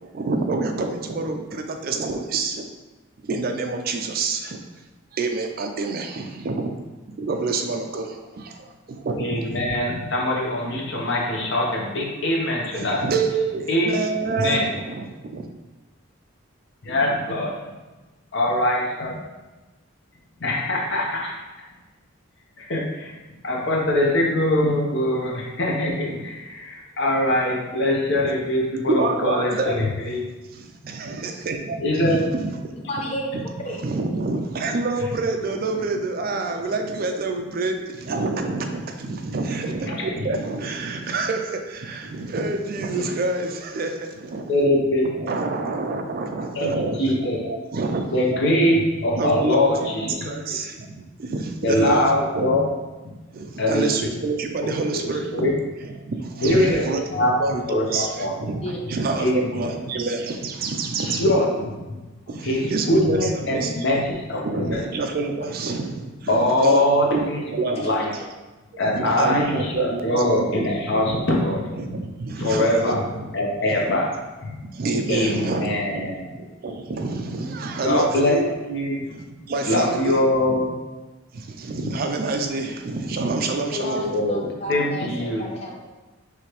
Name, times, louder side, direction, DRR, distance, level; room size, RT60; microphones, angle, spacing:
voice 1, 0.0-2.6 3.2-4.6 5.1-6.7 7.2-9.5 12.7-15.5 28.9-29.9 30.5-32.7 33.3-33.5 33.8-44.8 45.0-48.4 49.2-52.7 53.3-55.5 55.8-61.3 62.3-64.1 64.4-67.3 67.5-68.2 68.9-70.7 71.8-73.3 73.7-73.8 74.7-78.5 79.1-80.2 80.5-80.6 81.3-84.0 84.7-84.9, right 3 dB, 45° right, 4 dB, 0.4 m, -27 dB
voice 2, 9.2-13.0 13.7-14.0 14.4-14.7 16.8-17.7 18.3-19.1 20.4-21.4 22.6-23.1 23.4-30.2 31.8-32.2 44.5-45.1 46.6-46.7 47.0-47.4 48.1-50.4 51.6-52.7 53.6-54.1 54.9-55.5 56.4-56.8 57.1-57.4 57.7-58.3 59.2-59.7 61.0-61.7 62.4-64.8 66.3-68.1 68.8-71.6 72.4-73.0 73.3-74.2 74.4-74.5 75.1-76.3 77.8-78.4 78.7-79.0 79.7-80.7 83.9-85.5, left 1 dB, 60° left, -2 dB, 0.9 m, -22 dB
voice 3, 32.9-33.3 33.6-33.8 58.6-58.8 83.7-85.9, left 1 dB, 30° left, -1 dB, 0.7 m, -32 dB
4.8 x 3.2 x 3.0 m, 1.2 s
head